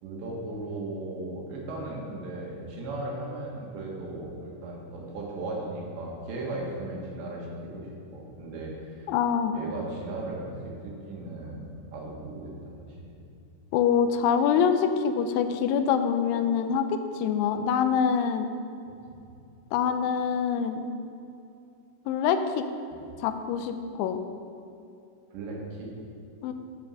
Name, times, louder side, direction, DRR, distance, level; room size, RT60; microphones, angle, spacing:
voice 1, 0.0-9.1 9.5-13.2 19.1-19.3 25.3-25.9, right 2 dB, 75° right, -2 dB, 3.7 m, -37 dB
voice 2, 9.1-9.5 13.7-18.5 19.7-20.8 22.1-22.6 23.2-24.2 26.4-26.5, left 7 dB, 85° left, 8 dB, 2.9 m, -25 dB
12.0 x 5.3 x 6.2 m, 2.7 s
omnidirectional pair, 5.4 m